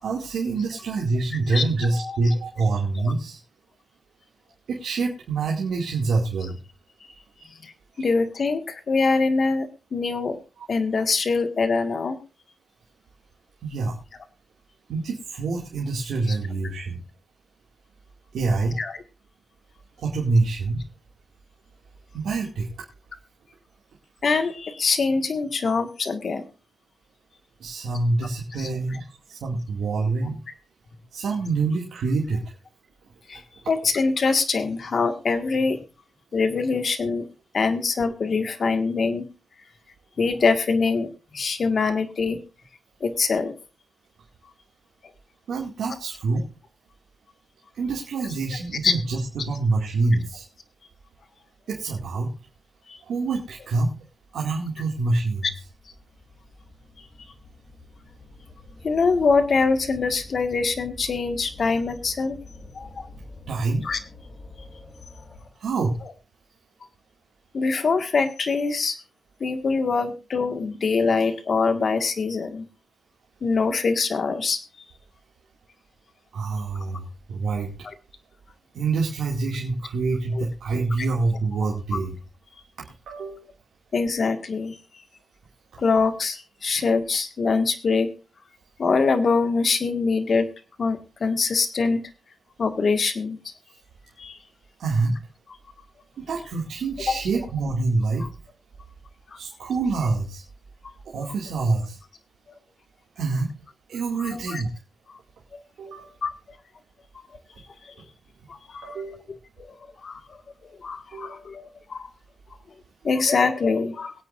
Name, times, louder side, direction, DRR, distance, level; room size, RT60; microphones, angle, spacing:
voice 1, 0.0-3.4 4.7-6.6 7.9-8.1 13.6-14.0 14.9-17.0 18.3-18.8 20.0-20.8 22.1-22.9 27.6-30.4 31.1-32.5 33.3-33.4 45.5-46.5 47.7-50.4 51.7-52.3 53.0-53.9 54.3-55.5 63.5-63.8 65.6-66.0 76.3-77.7 78.7-82.1 82.8-83.5 85.7-85.8 94.8-95.1 96.2-98.3 99.3-100.4 101.0-102.0 103.2-103.5 103.9-104.7 105.8-106.1 108.8-109.2 111.1-111.4, right 3 dB, 85° right, -2 dB, 2.4 m, -26 dB
voice 2, 1.9-2.3 3.0-3.1 7.6-7.7 8.0-10.4 10.7-12.2 16.3-16.4 18.8-19.0 24.2-26.4 28.5-29.0 33.3-33.4 33.7-35.8 36.3-37.3 37.5-39.3 40.2-41.1 41.3-42.4 43.0-43.5 48.2-48.4 48.8-48.9 52.9-53.0 58.8-62.4 62.7-63.1 63.8-64.0 67.5-69.0 69.4-72.7 73.4-74.6 77.8-77.9 80.3-80.4 81.0-81.1 81.6-82.0 83.9-84.8 85.8-88.1 88.8-90.5 90.8-92.0 92.6-93.5 94.2-94.4 95.5-95.6 97.1-97.2 98.2-98.3 99.3-99.4 101.2-101.3 104.2-104.6 105.5-105.6 106.2-106.3 107.8-107.9 108.5-109.0 109.6-109.8 110.0-110.4 110.8-112.1 113.0-114.1, left 4 dB, 60° left, 7 dB, 1.8 m, -24 dB
sound 1, 54.3-54.4 55.1-65.7, left 2 dB, 45° left, 4.6 m, -46 dB
22.0 x 8.7 x 2.6 m, 0.32 s
cardioid pair, 65°, 0 cm